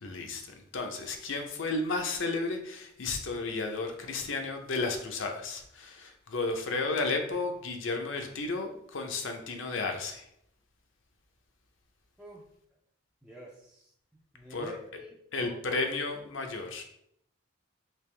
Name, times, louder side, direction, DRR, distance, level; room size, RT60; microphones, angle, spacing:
voice 1, 0.0-10.3 14.5-14.7 15.3-16.8, left 3 dB, 70° left, 4 dB, 0.6 m, -33 dB
voice 2, 13.2-15.8, equal, 5° right, -5 dB, 0.4 m, -48 dB
3.4 x 2.9 x 3.2 m, 0.73 s
head